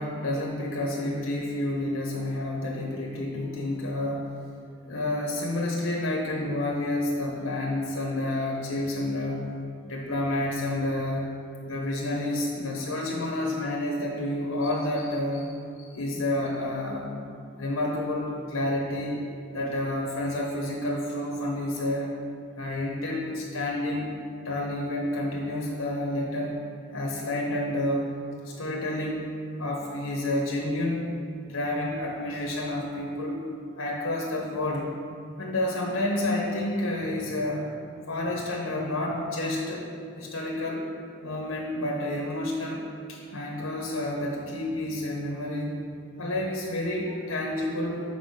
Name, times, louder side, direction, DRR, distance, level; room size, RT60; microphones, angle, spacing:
voice 1, 0.0-4.4 4.9-9.4 9.8-11.3 11.6-17.1 17.6-19.2 19.5-22.2 22.6-24.1 24.4-26.6 26.9-28.2 28.4-31.0 31.4-33.4 33.8-34.9 35.4-37.7 38.1-39.9 40.1-40.9 41.2-42.8 43.1-45.8 46.2-48.0, left 1 dB, 80° left, -1 dB, 0.9 m, -29 dB
5.5 x 4.8 x 6.4 m, 2.4 s
head